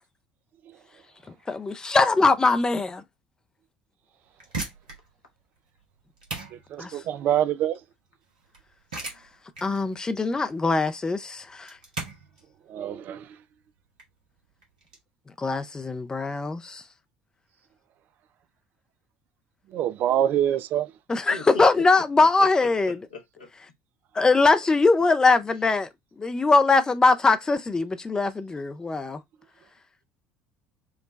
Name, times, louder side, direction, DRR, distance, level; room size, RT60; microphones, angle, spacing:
voice 1, 1.5-3.0 6.8-6.9 9.6-11.8 15.4-16.8 21.1-23.0 24.1-25.9 26.2-29.2, left 3 dB, 15° left, 0.5 m, -22 dB
sound 1, 4.2-15.0, right 3 dB, 80° right, 1.0 m, -40 dB
voice 2, 6.7-7.8 12.7-13.3 19.7-20.9, right 11 dB, 45° right, 0.4 m, -25 dB
voice 3, 21.3-21.6 22.4-23.5, left 4 dB, 75° left, 1.0 m, -38 dB
4.7 x 2.2 x 3.1 m
figure-of-eight pair, 60°, 4 cm